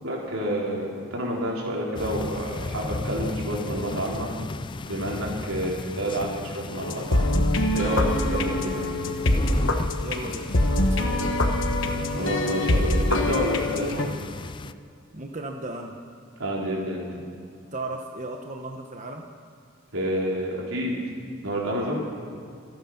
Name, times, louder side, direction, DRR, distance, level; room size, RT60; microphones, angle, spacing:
voice 1, 0.0-4.3 4.9-7.4 7.7-8.9 12.1-14.1 16.4-17.0 19.9-20.9 21.4-22.2, equal, 90° right, -3 dB, 4.5 m, -29 dB
sound 1, 2.0-14.7, left 3 dB, 25° left, 0.3 m, -36 dB
sound 2, 6.8-14.1, left 1 dB, 65° left, 1.3 m, -24 dB
voice 2, 10.0-11.6 15.1-16.0 17.7-19.2, right 2 dB, 35° right, 2 dB, 1.0 m, -36 dB
26.5 x 9.3 x 5.9 m, 2.4 s
head